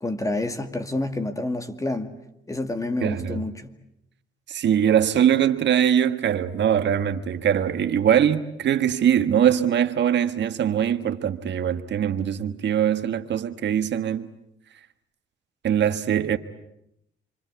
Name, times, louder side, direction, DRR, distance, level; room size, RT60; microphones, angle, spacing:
voice 1, 0.0-3.7, left 2 dB, 15° left, 2.2 m, -29 dB
voice 2, 3.0-3.4 4.5-14.3 15.6-16.4, right 9 dB, 65° right, 1.5 m, -22 dB
28.0 x 25.0 x 8.1 m
cardioid pair, 90°, 20 cm